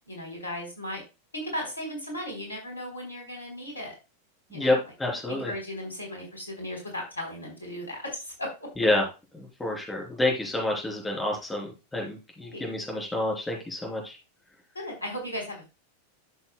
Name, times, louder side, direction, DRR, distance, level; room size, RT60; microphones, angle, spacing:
voice 1, 0.1-1.0 1.3-4.0 4.5-4.8 5.3-8.7 12.4-12.6 14.7-15.7, left 1 dB, 80° left, 1 dB, 3.7 m, -36 dB
voice 2, 4.5-5.5 8.8-9.0 9.3-14.2, left 2 dB, 10° left, 0 dB, 3.5 m, -28 dB
12.0 x 6.9 x 2.2 m, 0.28 s
figure-of-eight pair, 90°, 0 cm